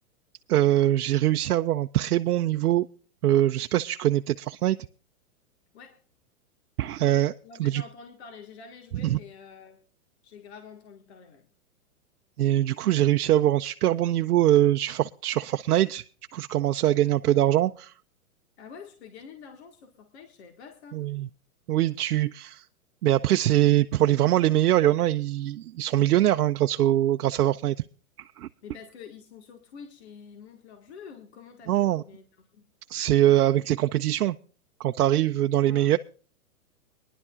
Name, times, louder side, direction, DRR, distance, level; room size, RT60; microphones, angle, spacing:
voice 1, 0.5-2.9 3.2-4.8 6.8-7.3 7.6-7.8 9.0-9.2 12.4-16.0 16.3-17.9 20.9-21.3 21.7-22.6 23.0-27.7 28.2-28.5 31.7-32.0 32.9-34.3 34.8-36.0, right 13 dB, 85° right, 0.6 m, -23 dB
voice 2, 7.4-9.8 10.2-11.5 18.6-21.0 28.6-32.7 35.6-36.0, left 6 dB, 45° left, 1.7 m, -47 dB
22.5 x 11.0 x 2.4 m
hypercardioid pair, 170°, 44 cm